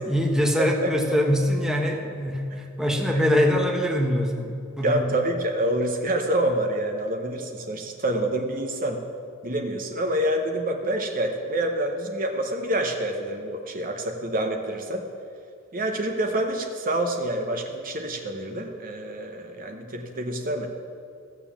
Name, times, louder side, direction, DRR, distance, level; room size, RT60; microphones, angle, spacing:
voice 1, 0.1-5.0, equal, 5° right, 1 dB, 1.1 m, -23 dB
voice 2, 0.6-0.9 2.5-2.6 4.8-9.0 9.4-15.1 15.7-20.7, right 1 dB, 40° right, 4 dB, 0.9 m, -27 dB
15.0 x 7.1 x 7.2 m, 2.5 s
head